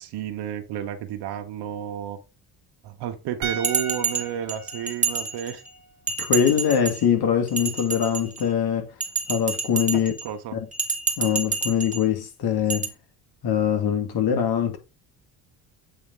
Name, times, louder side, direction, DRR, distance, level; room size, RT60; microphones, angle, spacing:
voice 1, 0.0-2.2 2.8-5.6 10.2-10.6, right 10 dB, 75° right, 1.3 m, -31 dB
sound 1, 3.4-6.6 6.9-7.0, right 6 dB, 45° right, 1.5 m, -37 dB
Bell, 3.6-5.7 6.1-7.1 7.5-8.5 9.0-10.3 10.7-12.0 12.7-12.9, right 5 dB, 20° right, 1.8 m, -28 dB
voice 2, 6.2-8.9 9.3-10.1 10.5-10.7 11.2-12.9 13.4-14.8, left 8 dB, 65° left, 2.6 m, -23 dB
8.5 x 4.1 x 4.0 m
cardioid pair, 100°, 41 cm